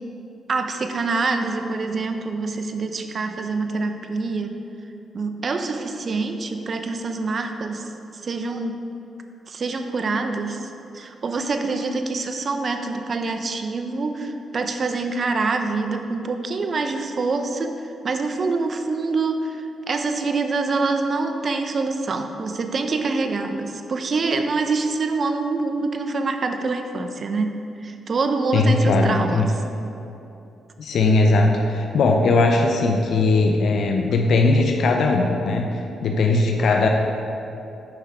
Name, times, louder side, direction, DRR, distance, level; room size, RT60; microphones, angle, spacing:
voice 1, 0.5-4.5 5.1-8.8 9.5-29.6, right 3 dB, 50° right, 7 dB, 0.8 m, -25 dB
voice 2, 28.5-29.5 30.8-36.9, left 3 dB, 70° left, 2 dB, 0.7 m, -19 dB
9.1 x 5.8 x 4.9 m, 2.7 s
supercardioid pair, 55°, 0 cm